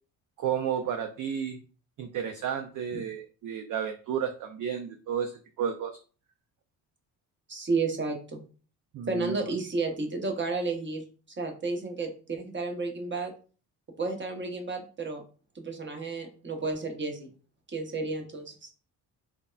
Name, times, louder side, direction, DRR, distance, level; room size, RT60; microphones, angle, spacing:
voice 1, 0.4-1.6 2.0-5.3 5.6-6.0 8.9-9.4, right 8 dB, 45° right, 7 dB, 0.5 m, -32 dB
voice 2, 7.5-8.4 9.1-11.0 11.4-13.3 14.0-15.2 15.5-17.3 17.7-18.7, right 3 dB, 25° right, 3 dB, 0.9 m, -32 dB
3.4 x 2.1 x 2.4 m, 0.37 s
supercardioid pair, 55°, 45 cm